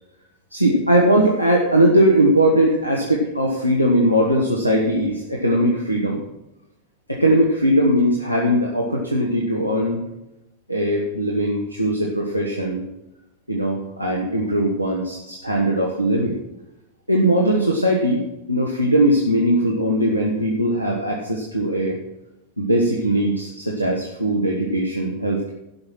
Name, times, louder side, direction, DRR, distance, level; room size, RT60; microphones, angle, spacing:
voice 1, 0.5-6.2 7.1-10.0 10.7-12.8 13.5-16.4 17.1-22.0 22.6-25.5, right 1 dB, 90° right, -2 dB, 1.2 m, -20 dB
12.0 x 5.6 x 6.2 m, 0.95 s
figure-of-eight pair, 90°, 0 cm